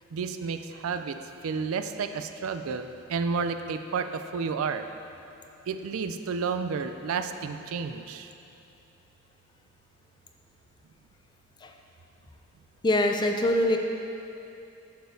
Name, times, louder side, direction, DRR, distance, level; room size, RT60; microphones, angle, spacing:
voice 1, 0.1-1.2 1.4-4.8 5.7-8.3, right 5 dB, 70° right, 8 dB, 0.4 m, -31 dB
voice 2, 12.8-13.8, left 1 dB, 20° left, 4 dB, 0.4 m, -23 dB
10.0 x 6.8 x 2.7 m, 2.8 s
head